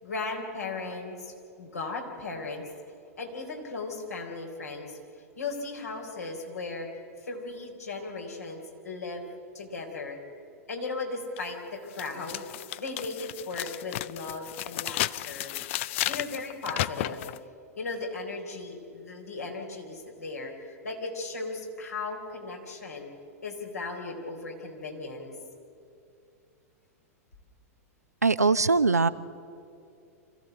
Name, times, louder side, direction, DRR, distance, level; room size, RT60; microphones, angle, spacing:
voice 1, 0.0-2.6 3.2-5.0 5.4-6.9 7.2-9.2 9.5-10.2 10.7-15.5 16.0-17.2 17.8-20.5 20.8-23.1 23.4-25.3, left 3 dB, 80° left, 1 dB, 3.9 m, -37 dB
sound 1, 11.4-11.5 11.9-17.4, left 15 dB, 50° left, 0.4 m, -33 dB
voice 2, 28.2-29.1, right 4 dB, 90° right, 13 dB, 0.7 m, -21 dB
26.0 x 15.0 x 7.9 m, 2.5 s
figure-of-eight pair, 100°, 8 cm